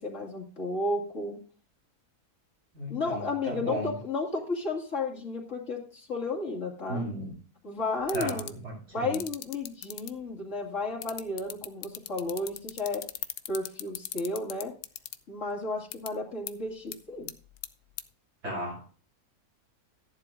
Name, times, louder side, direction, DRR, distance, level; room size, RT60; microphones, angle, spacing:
voice 1, 0.0-1.4 2.9-7.0 7.6-8.5 8.9-13.0 13.5-14.7 15.3-17.3, left 2 dB, 50° left, -3 dB, 2.7 m, -33 dB
voice 2, 2.7-3.9 6.9-7.3 8.1-9.2 18.4-18.9, right 1 dB, 80° right, -1 dB, 6.6 m, -35 dB
sound 1, 8.0-8.5 9.1-10.1 11.0-15.2 15.9-16.1 16.5-16.6 16.9-17.0 17.3-17.7 18.0-18.1, left 12 dB, 90° left, 1.2 m, -36 dB
14.5 x 11.0 x 2.6 m, 0.41 s
omnidirectional pair, 1.6 m